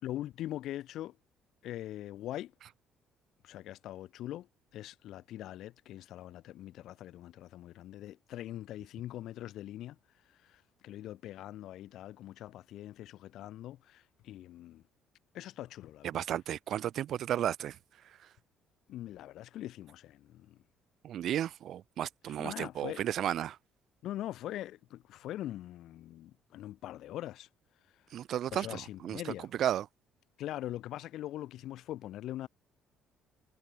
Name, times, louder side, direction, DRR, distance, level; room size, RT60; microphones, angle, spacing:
voice 1, 0.0-1.2 1.6-2.5 3.4-10.0 10.3-14.8 15.3-16.3 18.9-20.6 22.3-23.0 24.0-27.5 27.9-28.0 28.5-29.5 30.4-32.5, left 13 dB, 70° left, 1.8 m, -42 dB
voice 2, 16.0-17.8 21.0-23.6 28.1-29.2 29.6-29.8, right 11 dB, 60° right, 0.4 m, -33 dB
cardioid pair, 125°, 0 cm